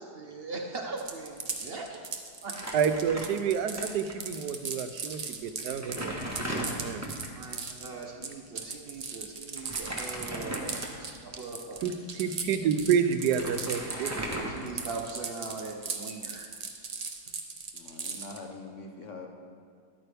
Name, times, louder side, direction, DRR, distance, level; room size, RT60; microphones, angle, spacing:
voice 1, 0.0-2.0 2.4-2.6 7.3-11.8 14.2-16.8, right 3 dB, 50° right, 2 dB, 0.8 m, -40 dB
sound 1, 1.0-14.4 14.6-18.4, right 5 dB, 70° right, 0.3 m, -38 dB
Crumpling crinkling, 2.5-3.8 4.1-4.2 5.1-5.2 5.6-7.4 9.6-11.2 11.8-11.9 12.8-12.9 13.1-15.2, right 1 dB, 10° right, 0.9 m, -37 dB
voice 2, 2.7-6.1 6.5-7.1 11.8-14.4, right 7 dB, 85° right, 9 dB, 1.2 m, -29 dB
voice 3, 17.7-19.3, left 3 dB, 55° left, 3 dB, 1.1 m, -43 dB
11.0 x 8.8 x 3.4 m, 2.1 s
omnidirectional pair, 1.7 m